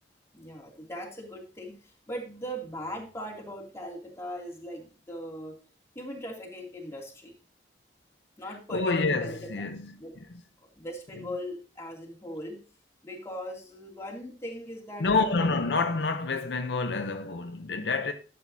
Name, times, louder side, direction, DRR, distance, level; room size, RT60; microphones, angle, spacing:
voice 1, 0.3-5.5 5.9-7.3 8.4-9.7 10.0-10.1 10.8-12.6 13.0-15.4, equal, 15° left, 2.6 m, -39 dB
voice 2, 8.7-9.9 15.0-18.1, left 3 dB, 70° left, 0.7 m, -27 dB
11.5 x 7.9 x 2.7 m
head